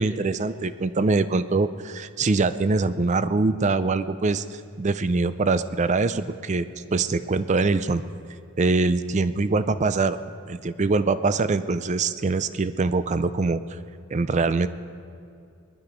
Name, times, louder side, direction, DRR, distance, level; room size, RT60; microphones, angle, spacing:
voice 1, 0.0-8.0 8.6-10.2 10.5-13.8 14.1-14.7, right 3 dB, 35° right, 13 dB, 0.4 m, -23 dB
20.0 x 11.5 x 5.1 m, 2.5 s
head